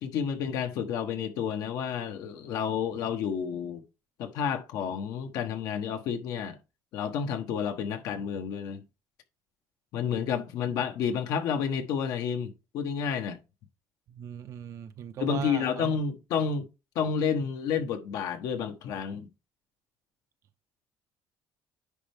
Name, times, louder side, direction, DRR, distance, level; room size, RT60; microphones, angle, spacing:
voice 1, 0.0-3.8 4.2-6.6 6.9-8.8 9.9-13.4 15.2-16.6 16.9-19.3, left 7 dB, 75° left, 1.1 m, -30 dB
voice 2, 14.1-15.9, right 9 dB, 55° right, 0.6 m, -38 dB
9.9 x 4.4 x 3.5 m
cardioid pair, 125°, 6 cm